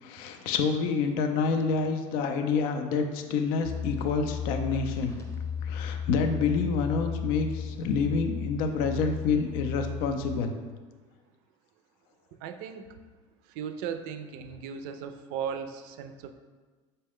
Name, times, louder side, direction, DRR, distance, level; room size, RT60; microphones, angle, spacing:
voice 1, 0.0-5.2 5.6-10.5, left 5 dB, 65° left, 6 dB, 0.5 m, -28 dB
sound 1, 3.6-10.4, left 7 dB, 15° left, 0.8 m, -35 dB
voice 2, 12.4-12.9 13.5-16.3, right 7 dB, 65° right, 8 dB, 0.4 m, -36 dB
5.2 x 2.2 x 3.6 m, 1.4 s
hypercardioid pair, 85°, 16 cm